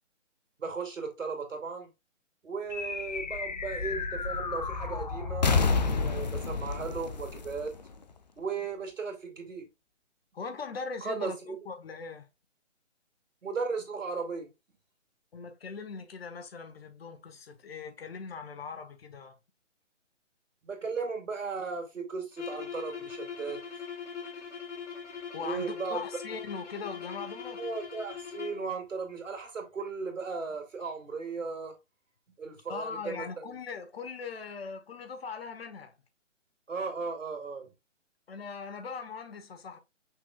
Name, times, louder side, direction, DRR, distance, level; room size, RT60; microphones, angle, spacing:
voice 1, 0.6-1.9 2.4-7.7 8.4-9.7 11.0-11.6 13.4-14.5 20.6-23.6 25.4-26.0 27.6-31.7 32.4-33.5 36.7-37.7, right 4 dB, 85° right, 2.0 m, -36 dB
sound 1, 2.7-8.4, left 4 dB, 35° left, 0.5 m, -31 dB
voice 2, 10.3-12.3 15.3-19.4 25.3-27.6 32.7-35.9 38.3-39.8, left 5 dB, 50° left, 1.0 m, -40 dB
sound 2, 22.3-28.7, left 7 dB, 70° left, 1.5 m, -41 dB
5.9 x 3.6 x 2.3 m
hypercardioid pair, 155°, 37 cm